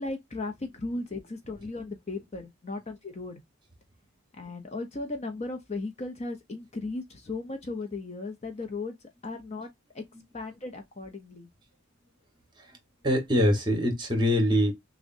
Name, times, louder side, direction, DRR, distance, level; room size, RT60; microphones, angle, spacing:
voice 1, 0.0-3.4 4.4-9.0 9.2-10.0 10.3-11.5, left 3 dB, 30° left, 0.6 m, -36 dB
voice 2, 13.0-14.7, equal, 20° right, 1.3 m, -24 dB
6.1 x 2.1 x 2.6 m
head